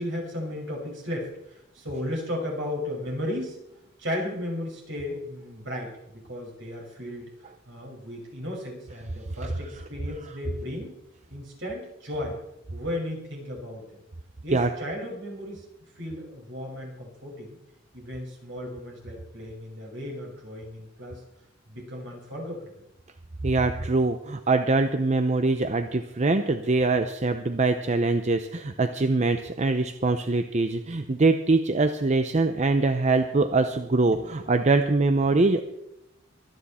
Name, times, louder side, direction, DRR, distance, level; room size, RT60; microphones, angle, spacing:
voice 1, 0.0-3.6 4.0-7.3 7.7-11.0 11.3-12.4 12.7-14.0 14.4-15.6 16.0-17.6 17.9-21.2 21.7-22.8 34.1-34.4, left 1 dB, 65° right, 0 dB, 5.6 m, -35 dB
voice 2, 23.4-35.6, right 3 dB, 35° right, 8 dB, 0.7 m, -23 dB
24.0 x 9.6 x 4.3 m, 0.83 s
head